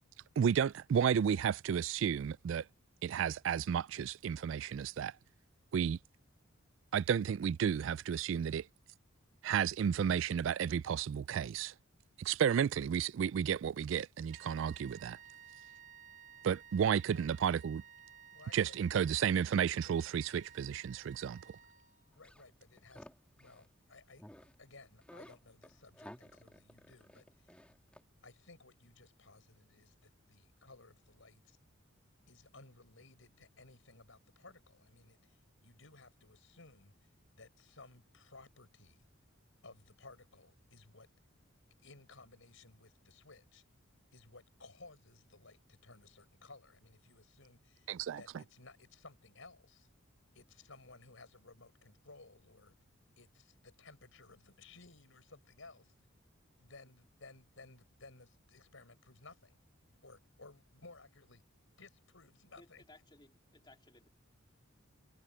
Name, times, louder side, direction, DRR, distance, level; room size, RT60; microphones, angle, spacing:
voice 1, 0.4-2.6 3.0-5.1 5.7-6.0 6.9-8.7 9.4-11.7 12.2-15.2 16.4-17.8 18.5-21.4 47.9-48.2, right 8 dB, 65° right, 0.3 m, -32 dB
sound 1, 14.3-22.2, right 8 dB, 35° right, 1.5 m, -56 dB
voice 2, 18.3-18.8 22.1-23.1 23.3-27.6 28.2-31.6 32.3-39.1 39.6-41.1 41.8-43.6 44.1-49.9 50.3-52.7 53.2-55.9 56.6-59.6 60.0-61.4 61.8-62.8, left 3 dB, 70° left, 5.0 m, -58 dB
sound 2, 22.1-23.7 24.1-24.5 24.8-28.0, equal, 5° left, 2.3 m, -55 dB
voice 3, 62.6-64.1, left 2 dB, 20° left, 2.9 m, -61 dB
head